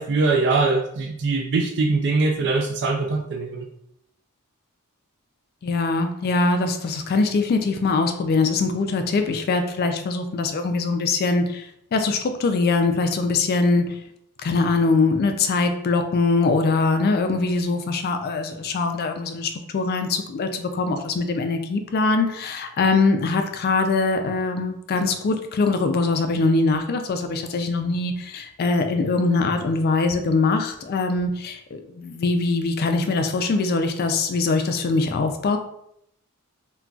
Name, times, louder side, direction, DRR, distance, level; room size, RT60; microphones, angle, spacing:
voice 1, 0.0-3.7, right 3 dB, 50° right, 2 dB, 0.3 m, -22 dB
voice 2, 5.6-14.0 14.4-35.6, left 3 dB, 45° left, 7 dB, 0.3 m, -22 dB
3.7 x 2.2 x 2.3 m, 0.75 s
head